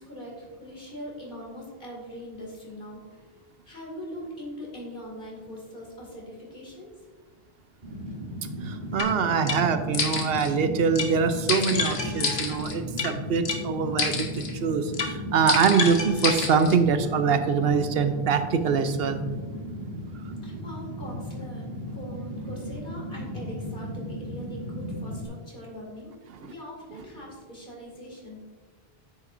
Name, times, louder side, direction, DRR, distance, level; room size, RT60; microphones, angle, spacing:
voice 1, 0.0-6.9 20.4-26.1 26.4-28.4, equal, 55° left, -2 dB, 2.6 m, -41 dB
Fire, 7.8-25.3, equal, 55° right, 2.0 m, -36 dB
voice 2, 8.6-14.3 14.6-19.2, right 6 dB, 70° right, 9 dB, 0.8 m, -24 dB
sound 1, 9.0-9.1 9.5-9.6 9.9-10.5 11.0-11.1 11.5-13.1 13.5-13.6 14.0-14.5 14.9-15.1 15.5-16.8, left 4 dB, 75° left, 1.2 m, -28 dB
9.4 x 7.7 x 2.6 m, 1.4 s
omnidirectional pair, 1.1 m